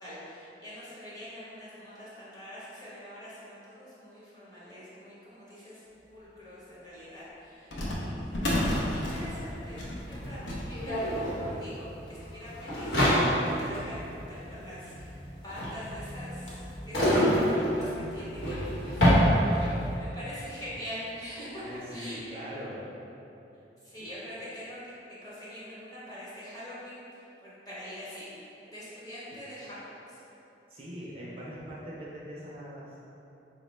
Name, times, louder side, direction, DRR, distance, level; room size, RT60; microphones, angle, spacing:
voice 1, 0.0-5.8 6.1-7.7 8.1-21.6 21.9-22.4 23.8-25.0 25.2-28.3 28.6-30.2, equal, 20° left, -10 dB, 1.0 m, -44 dB
sound 1, 6.3-6.4 7.7-14.6 15.2-15.3 15.5-15.7 16.1-16.8 17.3-17.4 18.2-18.3 18.7-18.8 20.2-20.5 20.9-21.0 21.6-21.8, left 1 dB, 90° left, 0.6 m, -35 dB
voice 2, 8.1-8.6 21.6-22.8 24.0-24.1 29.3-29.4 30.7-33.0, equal, 30° right, -6 dB, 0.4 m, -42 dB
sound 2, 9.2-9.3 9.4-19.9, equal, 70° left, 1.1 m, -27 dB
4.3 x 2.1 x 3.1 m, 2.9 s
head